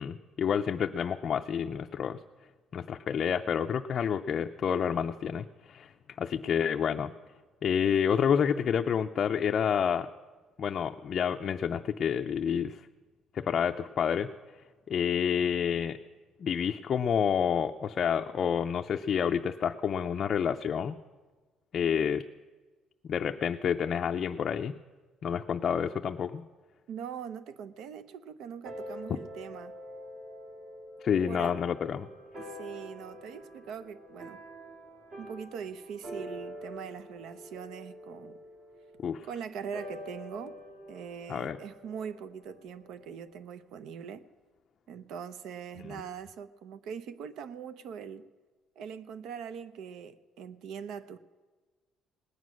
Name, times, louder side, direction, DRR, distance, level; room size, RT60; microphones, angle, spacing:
voice 1, 0.0-2.2 2.7-5.9 6.2-7.1 7.6-10.1 10.6-12.8 13.3-14.3 14.9-16.0 16.4-21.0 21.7-22.2 23.0-24.8 25.2-26.4 31.0-32.1 39.0-39.3 41.3-41.6 45.8-46.0, left 7 dB, 40° left, 5 dB, 0.4 m, -29 dB
voice 2, 26.9-29.8 31.3-31.5 32.4-34.4 35.2-38.4 39.2-40.5 40.9-44.2 44.9-48.3 48.8-51.2, right 7 dB, 70° right, 13 dB, 0.7 m, -42 dB
sound 1, 28.6-43.4, equal, 50° right, 3.3 m, -46 dB
19.0 x 9.5 x 6.2 m, 1.3 s
cardioid pair, 155°, 0 cm